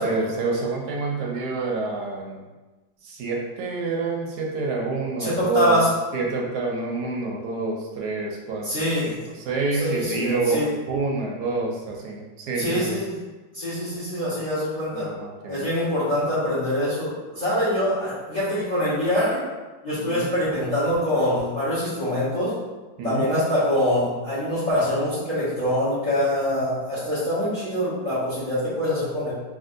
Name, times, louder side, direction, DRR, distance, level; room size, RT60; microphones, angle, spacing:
voice 1, 0.0-2.4 3.0-5.8 6.1-10.6 10.9-13.0 14.9-15.7 20.0-20.3 23.0-23.3, right 3 dB, 70° right, -1 dB, 1.0 m, -28 dB
voice 2, 5.2-5.9 8.6-9.2 9.7-10.7 12.6-13.2 13.5-15.1 15.5-19.4 19.8-22.5 23.0-29.3, left 1 dB, 30° left, -10 dB, 0.9 m, -24 dB
3.5 x 2.5 x 2.5 m, 1.2 s
omnidirectional pair, 2.0 m